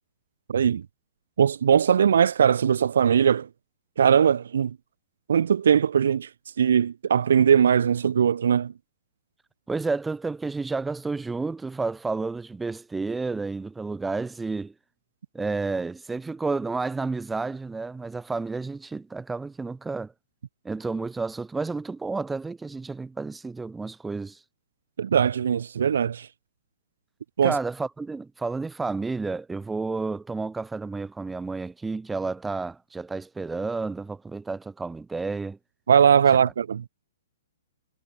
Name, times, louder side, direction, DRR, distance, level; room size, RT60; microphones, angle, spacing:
voice 1, 0.5-0.9 1.4-3.5 4.0-4.8 5.3-6.3 6.6-8.7 25.0-26.3 27.4-27.6 35.9-36.9, right 8 dB, 75° right, 2.0 m, -20 dB
voice 2, 9.7-14.7 15.3-20.1 20.6-24.4 27.4-35.6, right 3 dB, 5° right, 7.6 m, -31 dB
hypercardioid pair, 165°, 0 cm